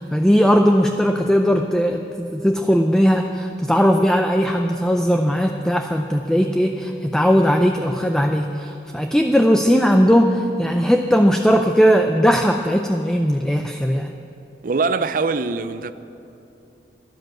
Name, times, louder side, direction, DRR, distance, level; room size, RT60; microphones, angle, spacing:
voice 1, 0.0-14.1, equal, 5° left, 0.4 m, -18 dB
voice 2, 14.6-15.9, right 4 dB, 50° right, 0.5 m, -22 dB
12.5 x 11.0 x 7.7 m
head